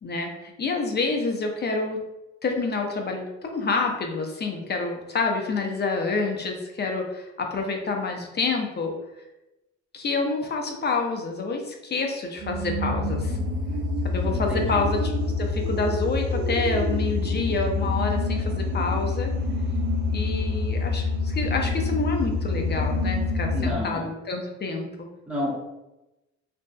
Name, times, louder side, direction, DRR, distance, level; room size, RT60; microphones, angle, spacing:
voice 1, 0.0-2.0 2.4-8.9 9.9-13.4 14.0-15.0 15.4-19.3 20.1-25.1, left 3 dB, 35° left, 2 dB, 0.5 m, -28 dB
sound 1, 12.4-23.7, left 3 dB, 80° right, 0.5 m, -26 dB
voice 2, 14.3-14.8 23.5-24.1 25.3-25.6, left 1 dB, 5° right, -5 dB, 0.9 m, -30 dB
2.5 x 2.2 x 2.2 m, 0.97 s
cardioid pair, 90°, 30 cm